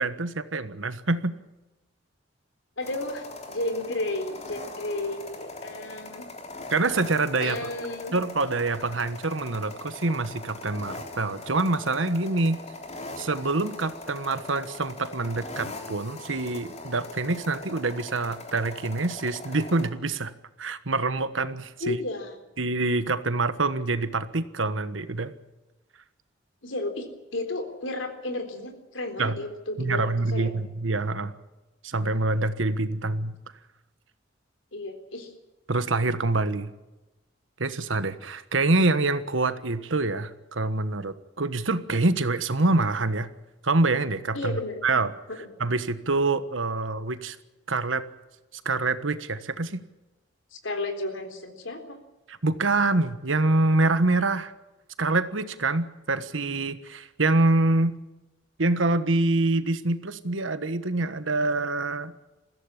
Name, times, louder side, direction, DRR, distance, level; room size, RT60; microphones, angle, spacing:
voice 1, 0.0-1.4 6.7-7.6 8.1-12.6 13.2-20.3 20.6-22.0 22.6-25.3 29.2-29.4 29.8-31.3 31.8-33.3 35.7-36.7 37.6-43.3 43.6-45.1 45.6-47.4 47.7-48.0 48.5-49.8 52.3-54.5 55.0-58.0 58.6-62.1, right 2 dB, 85° right, 12 dB, 1.4 m, -26 dB
voice 2, 2.8-6.3 7.4-8.1 21.8-22.4 26.6-30.5 34.7-35.3 44.3-44.8 45.4-45.5 50.5-52.0, left 2 dB, 80° left, 6 dB, 3.8 m, -33 dB
sound 1, 2.8-19.9, left 2 dB, 35° left, 3.5 m, -41 dB
22.0 x 15.5 x 10.0 m, 1.1 s
head